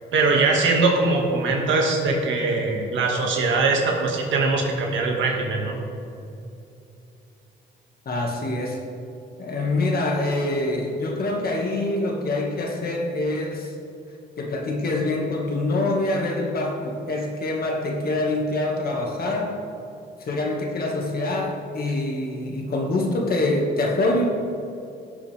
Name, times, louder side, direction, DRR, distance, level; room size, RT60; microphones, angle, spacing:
voice 1, 0.1-5.8, right 3 dB, 75° right, 0 dB, 2.1 m, -21 dB
voice 2, 8.1-8.8 9.4-13.7 14.4-19.6 20.2-24.3, left 2 dB, 50° left, 0 dB, 2.1 m, -25 dB
17.0 x 7.0 x 3.6 m, 2.8 s
cardioid pair, 90°, 20 cm